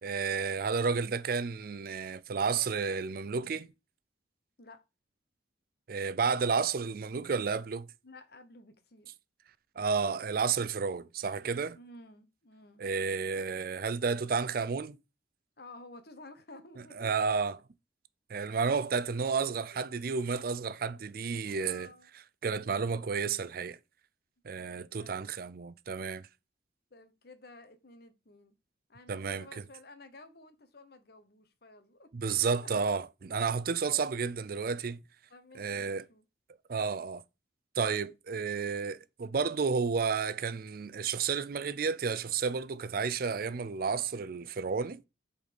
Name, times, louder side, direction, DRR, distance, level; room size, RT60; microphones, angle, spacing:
voice 1, 0.0-3.7 5.9-7.9 9.8-11.8 12.8-15.0 17.0-17.6 18.3-21.9 22.4-23.8 24.4-26.3 29.1-29.5 32.1-35.0 35.6-36.0 36.7-37.2 37.8-45.0, right 5 dB, 50° right, 0.4 m, -31 dB
voice 2, 8.0-9.1 11.7-12.8 15.6-17.2 19.7-19.9 21.5-22.1 25.0-25.3 26.9-28.5 28.9-32.1 33.7-34.0 35.3-36.3, left 2 dB, 55° left, 1.1 m, -53 dB
7.8 x 4.1 x 5.1 m
head